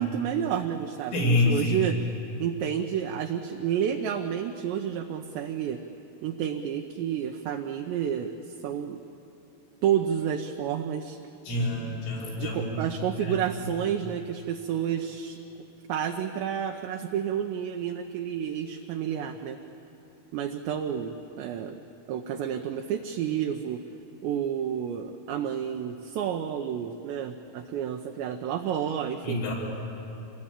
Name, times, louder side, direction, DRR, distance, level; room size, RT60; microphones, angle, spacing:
voice 1, 0.0-2.0 2.4-5.8 6.2-9.0 9.8-11.2 12.4-15.4 15.9-19.6 20.3-21.8 22.1-23.8 24.2-29.4, right 9 dB, 80° right, 4 dB, 2.7 m, -30 dB
voice 2, 1.1-1.8 11.5-12.7 13.2-13.4 29.2-29.5, left 2 dB, 80° left, -3 dB, 8.2 m, -26 dB
26.5 x 21.0 x 8.9 m, 3.0 s
omnidirectional pair, 5.8 m